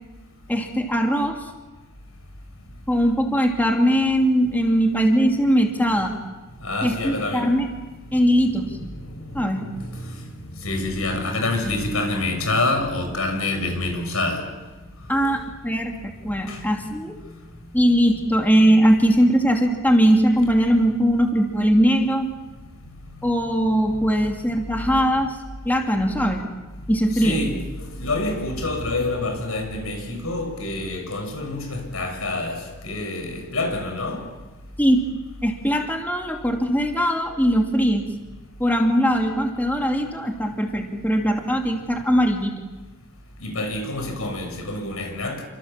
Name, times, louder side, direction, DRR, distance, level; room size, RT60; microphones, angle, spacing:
voice 1, 0.5-1.5 2.9-6.2 6.8-7.7 8.1-8.8 9.3-9.7 15.1-17.2 17.7-22.3 23.2-25.4 25.6-26.4 26.9-27.4 34.8-35.1 35.4-38.0 38.6-42.5, equal, 10° left, 2.7 m, -20 dB
voice 2, 6.6-7.5 8.2-8.3 8.9-10.3 10.6-14.5 15.1-15.2 16.5-16.6 24.1-24.2 27.1-27.6 28.0-34.2 43.4-45.4, left 2 dB, 85° left, 7.3 m, -27 dB
29.5 x 26.0 x 7.5 m
head